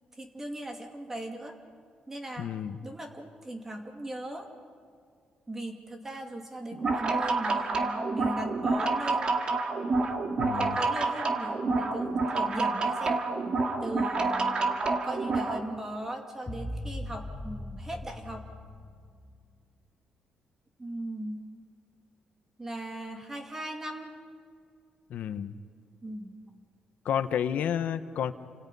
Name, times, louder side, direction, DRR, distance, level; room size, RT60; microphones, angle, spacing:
voice 1, 0.1-1.6 2.1-2.5 2.8-4.5 5.5-9.3 10.5-13.2 13.8-14.7 15.0-18.5 20.8-21.4 22.6-24.2 26.0-26.4, right 1 dB, 15° right, 3 dB, 2.4 m, -38 dB
voice 2, 2.4-2.8 10.4-10.8 25.1-25.5 27.0-28.3, left 9 dB, 70° left, 10 dB, 1.0 m, -30 dB
sound 1, 6.7-15.6, right 3 dB, 35° right, 1.9 m, -28 dB
sound 2, 16.5-19.5, left 1 dB, 20° left, 2.8 m, -40 dB
29.5 x 26.5 x 5.5 m, 2.2 s
cardioid pair, 160°, 3 cm